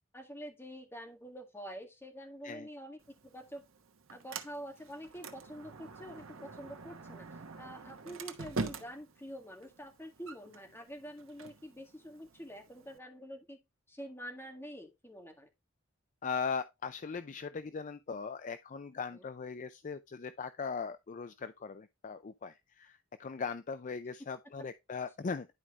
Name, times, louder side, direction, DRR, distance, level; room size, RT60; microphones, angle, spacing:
voice 1, 0.1-3.6 4.1-13.6 13.9-15.5 19.1-19.3, equal, 10° left, 1.9 m, -47 dB
Sliding door, 3.0-13.0, right 4 dB, 85° right, 1.1 m, -45 dB
voice 2, 16.2-25.5, left 5 dB, 40° left, 0.4 m, -39 dB
11.0 x 4.8 x 3.1 m
head